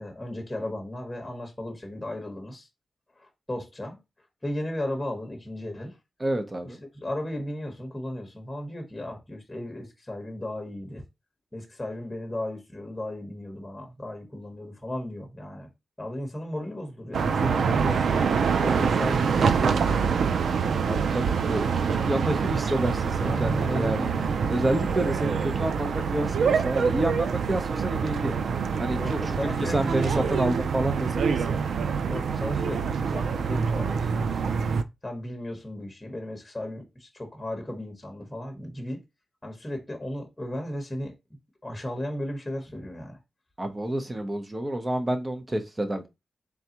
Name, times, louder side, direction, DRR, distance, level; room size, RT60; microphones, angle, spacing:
voice 1, 0.0-2.7 3.2-4.0 4.4-6.0 6.9-11.0 11.5-15.7 16.0-18.3 18.6-20.3 21.0-21.3 23.2-24.4 29.0-30.4 32.0-34.5 35.0-39.0 39.4-41.1 41.6-43.2, left 1 dB, 10° left, 1.1 m, -35 dB
voice 2, 6.2-6.8 20.9-24.1 24.5-28.3 28.8-31.6 43.6-46.1, right 1 dB, 25° right, 0.7 m, -29 dB
sound 1, 17.1-34.8, right 6 dB, 85° right, 0.3 m, -25 dB
3.9 x 3.4 x 2.9 m
wide cardioid pair, 115°, 0 cm